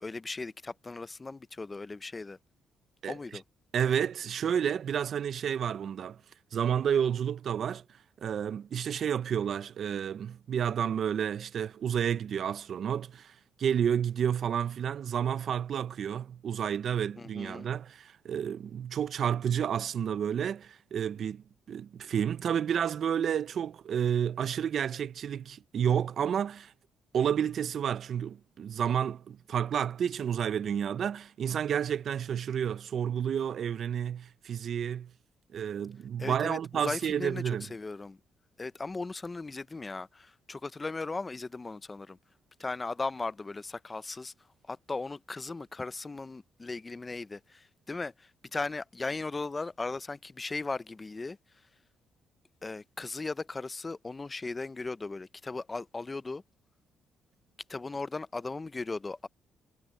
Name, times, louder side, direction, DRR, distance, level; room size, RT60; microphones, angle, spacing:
voice 1, 0.0-2.4 3.1-3.4 17.2-17.7 36.2-38.2 38.6-42.2 42.6-44.3 44.7-51.4 52.6-56.4 57.7-59.3, left 3 dB, 25° left, 0.6 m, -37 dB
voice 2, 3.7-6.2 6.5-7.8 8.2-26.7 27.1-35.1 35.5-37.7, right 8 dB, 60° right, 0.5 m, -30 dB
cardioid pair, 90°, 0 cm